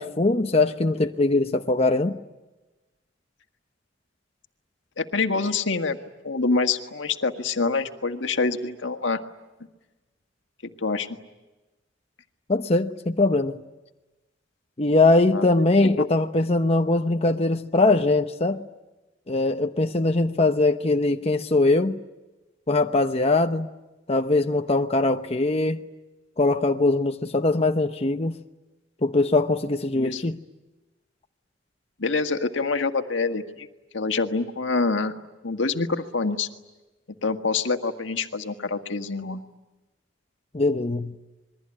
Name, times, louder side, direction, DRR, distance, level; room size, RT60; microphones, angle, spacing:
voice 1, 0.0-2.2 12.5-13.6 14.8-18.6 19.3-22.0 22.7-23.7 24.1-25.8 26.4-28.4 29.0-30.4 40.5-41.1, left 2 dB, 35° left, 0.9 m, -21 dB
voice 2, 5.0-6.0 6.2-9.2 10.8-11.1 15.3-15.4 16.0-16.1 29.9-30.2 32.0-33.7 33.9-35.1 35.4-36.5 37.2-39.4, left 4 dB, 80° left, 1.7 m, -26 dB
27.0 x 22.0 x 10.0 m
head